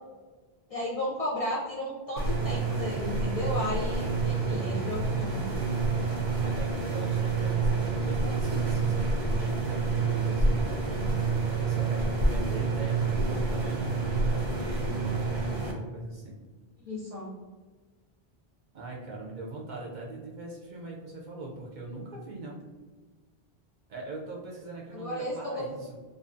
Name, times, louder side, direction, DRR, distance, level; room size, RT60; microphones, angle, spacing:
voice 1, 0.7-5.4 16.8-17.3 24.9-25.3, left 1 dB, 50° left, -6 dB, 0.4 m, -34 dB
sound 1, 2.2-15.7, right 3 dB, 85° right, 0.9 m, -28 dB
voice 2, 6.4-10.9 11.6-16.4 18.7-22.6 23.9-25.9, right 2 dB, 55° right, -3 dB, 0.6 m, -41 dB
2.5 x 2.2 x 2.4 m, 1.4 s
omnidirectional pair, 1.0 m